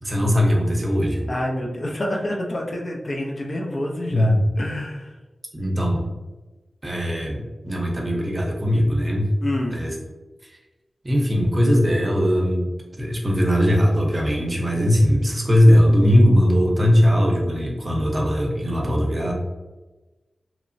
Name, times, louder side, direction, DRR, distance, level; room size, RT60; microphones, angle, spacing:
voice 1, 0.0-1.3 4.1-4.4 5.5-6.1 6.8-9.3 9.7-9.9 11.0-12.7 13.0-19.3, equal, 30° right, 0 dB, 0.6 m, -19 dB
voice 2, 1.3-5.1 9.4-9.8, left 1 dB, 55° left, -1 dB, 0.5 m, -28 dB
3.0 x 2.0 x 2.6 m, 1.2 s
cardioid pair, 50°, 0 cm